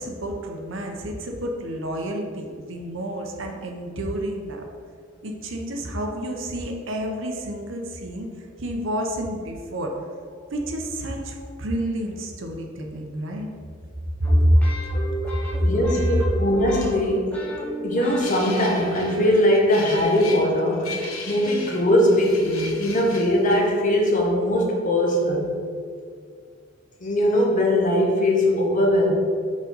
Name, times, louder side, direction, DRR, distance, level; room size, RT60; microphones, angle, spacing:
voice 1, 0.0-4.7 5.2-8.3 8.6-10.0 10.5-13.5 14.2-14.5, equal, 65° right, 2 dB, 0.8 m, -29 dB
sound 1, 14.2-19.9, equal, 5° left, 1.1 m, -34 dB
voice 2, 15.6-17.4 17.8-25.5 27.0-29.1, left 1 dB, 40° left, -1 dB, 1.0 m, -21 dB
sound 2, 18.2-23.7, left 3 dB, 85° left, 0.9 m, -37 dB
5.1 x 4.1 x 5.2 m, 2.1 s
head